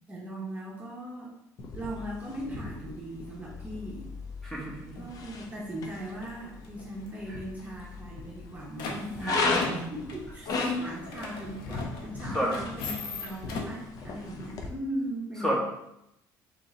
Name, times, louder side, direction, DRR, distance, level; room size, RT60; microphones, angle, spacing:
voice 1, 0.1-1.3 1.7-4.1 5.0-15.6, equal, 20° right, -4 dB, 0.9 m, -38 dB
sound 1, 1.6-14.7, left 3 dB, 50° left, 0.7 m, -37 dB
voice 2, 4.4-4.9 9.2-9.7 12.3-12.5 15.4-15.6, equal, 5° left, -4 dB, 1.1 m, -30 dB
sound 2, 4.9-5.1 5.5-5.8 6.1-7.1 7.4-7.5 7.7-7.8 8.2-13.9, left 4 dB, 80° left, 0.8 m, -40 dB
3.8 x 3.0 x 3.9 m, 0.82 s
cardioid pair, 115°, 8 cm